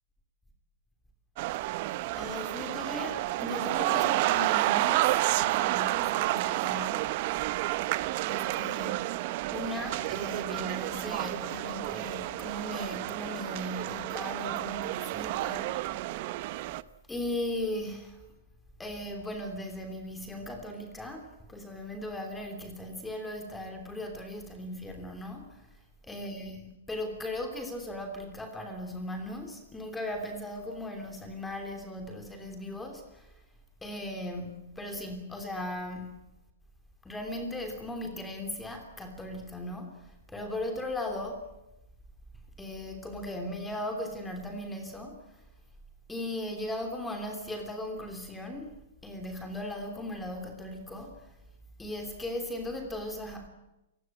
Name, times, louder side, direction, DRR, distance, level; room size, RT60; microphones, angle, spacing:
sound 1, 1.4-16.8, right 17 dB, 45° right, 0.8 m, -30 dB
voice 1, 2.1-7.1 8.2-15.9 17.1-18.2 18.8-25.6 26.1-33.3 33.8-36.1 37.0-41.5 42.6-45.2 46.1-48.7 49.0-51.3 51.8-53.5, left 1 dB, 5° left, 3.1 m, -38 dB
28.5 x 17.0 x 8.9 m
hypercardioid pair, 150°, 0 cm